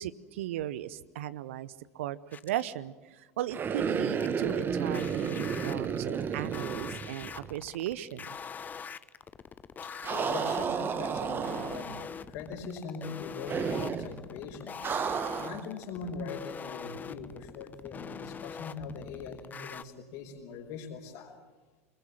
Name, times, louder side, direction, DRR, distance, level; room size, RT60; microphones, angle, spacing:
voice 1, 0.0-2.2 2.4-8.3, right 12 dB, 60° right, 17 dB, 0.9 m, -37 dB
sound 1, 2.3-2.7 4.2-19.8, left 6 dB, 20° left, 0.9 m, -43 dB
sound 2, 3.5-7.7 7.9-8.0 10.0-12.1 13.5-14.1 14.8-15.7, right 6 dB, 25° right, 1.4 m, -32 dB
voice 2, 9.8-14.8 15.4-21.4, left 5 dB, 50° left, 2 dB, 5.4 m, -41 dB
25.5 x 22.0 x 7.5 m, 1.2 s
figure-of-eight pair, 80°, 8 cm